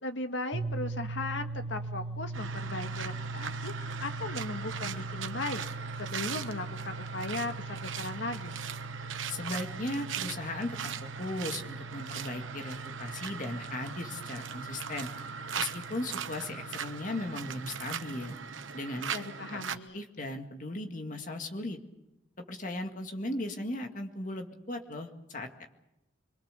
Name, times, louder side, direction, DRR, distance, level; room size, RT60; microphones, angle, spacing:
voice 1, 0.0-8.6 19.1-20.0, left 2 dB, 70° left, 7 dB, 1.8 m, -37 dB
sound 1, 0.5-18.4, right 2 dB, 60° right, 1.2 m, -41 dB
sound 2, 2.3-19.8, right 7 dB, 85° right, 1.1 m, -39 dB
voice 2, 9.3-10.9 11.2-15.1 15.6-18.4 18.7-19.1 19.5-19.6 19.9-21.8 22.5-25.7, left 1 dB, 40° left, 4 dB, 2.0 m, -37 dB
25.5 x 23.0 x 6.8 m, 0.93 s
head